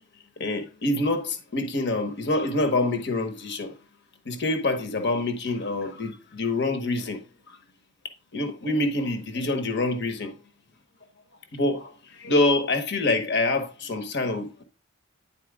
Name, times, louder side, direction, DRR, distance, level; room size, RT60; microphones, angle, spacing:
voice 1, 0.4-3.7 4.3-7.2 8.3-10.3 11.5-11.9 12.2-14.6, left 2 dB, 55° left, 1.1 m, -26 dB
10.0 x 4.4 x 3.5 m
head